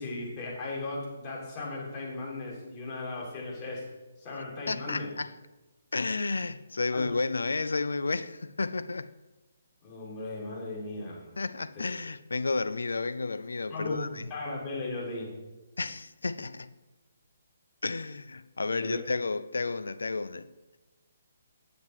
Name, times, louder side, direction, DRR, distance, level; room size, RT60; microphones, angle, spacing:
voice 1, 0.0-3.8 4.2-5.1 6.9-7.0 9.8-11.3 13.7-14.0 14.3-15.3 18.8-19.0, left 2 dB, 30° left, 2.8 m, -37 dB
voice 2, 4.7-5.3 5.9-9.1 11.4-14.3 15.8-16.7 17.8-20.5, left 3 dB, 70° left, 0.4 m, -32 dB
7.9 x 7.4 x 4.6 m
figure-of-eight pair, 140°, 0 cm